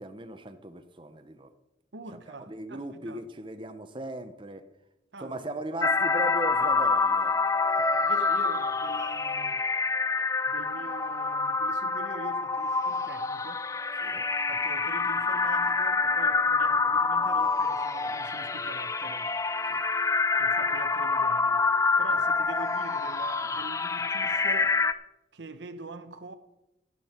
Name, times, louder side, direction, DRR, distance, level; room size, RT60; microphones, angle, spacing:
voice 1, 0.0-1.5 2.1-2.2 2.5-4.7 5.2-7.4 7.8-7.9 14.0-14.2 19.7-19.8, right 1 dB, 25° right, 0.7 m, -38 dB
voice 2, 1.9-3.2 5.1-5.5 7.9-9.6 10.4-13.7 14.5-19.3 20.4-24.8 25.3-26.4, right 3 dB, 75° right, 0.9 m, -44 dB
sound 1, 5.8-24.9, left 4 dB, 15° left, 0.4 m, -27 dB
12.5 x 12.0 x 4.4 m
head